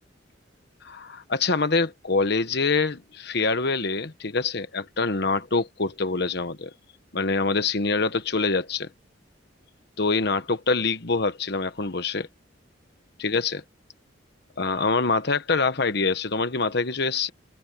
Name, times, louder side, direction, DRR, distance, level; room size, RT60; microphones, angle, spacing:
voice 1, 0.8-6.7 7.1-8.9 10.0-12.3 13.2-13.6 14.6-17.3, left 4 dB, 60° left, 1.2 m, -25 dB
head